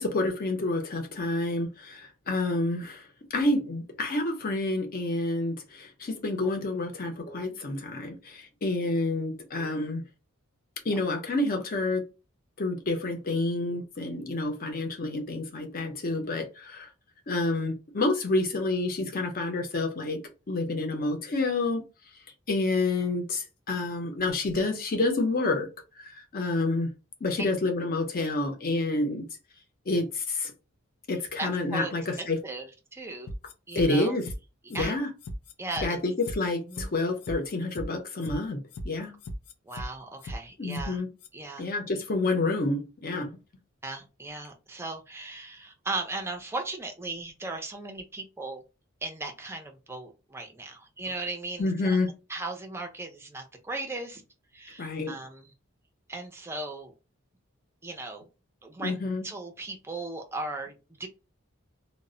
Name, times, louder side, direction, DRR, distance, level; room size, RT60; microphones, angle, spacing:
voice 1, 0.0-3.0 3.3-10.0 10.8-12.0 12.6-16.9 17.3-20.2 20.5-21.8 22.5-25.7 26.0-26.9 27.2-29.2 29.9-30.5 31.1-32.4 33.7-34.2 34.7-35.1 35.8-39.1 40.6-41.1 41.6-43.3 51.6-52.1 54.8-55.1 58.8-59.2, left 2 dB, 45° left, 0.6 m, -28 dB
voice 2, 31.4-31.9 32.2-33.3 33.7-34.1 34.7-34.9 35.6-36.0 36.6-36.9 39.6-41.0 41.3-41.7 43.8-48.6 49.0-52.0 52.3-54.2 54.5-55.5 56.1-56.9 57.8-58.2 58.6-59.0 59.2-61.1, right 2 dB, 10° right, 0.4 m, -37 dB
sound 1, 33.3-33.9 34.2-34.4 34.7-34.9 35.2-35.9 36.2-36.4 36.7-36.9 37.2-37.9 38.2-38.4 38.7-38.9 39.2-39.9 40.2-40.4 40.7-40.9 41.2-41.3, equal, 85° left, 0.4 m, -37 dB
2.0 x 2.0 x 3.6 m
head